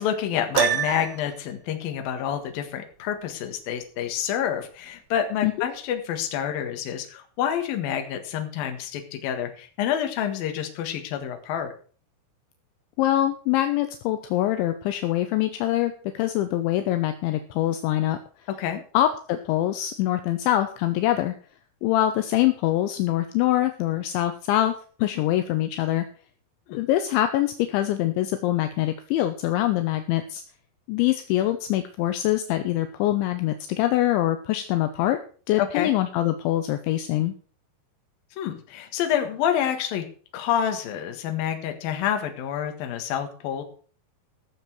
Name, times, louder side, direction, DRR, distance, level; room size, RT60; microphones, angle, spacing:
voice 1, 0.0-11.7 18.6-18.8 26.7-26.8 35.6-35.9 38.4-40.0 40.3-43.6, left 9 dB, 60° left, 6 dB, 2.8 m, -28 dB
Piano, 0.6-1.4, right 11 dB, 75° right, 2.7 m, -25 dB
voice 2, 13.0-18.2 18.9-21.3 21.8-24.7 25.0-26.1 26.7-30.4 30.9-35.2 35.5-37.3, left 13 dB, 80° left, 8 dB, 2.9 m, -24 dB
14.5 x 7.3 x 6.1 m, 0.42 s
omnidirectional pair, 5.7 m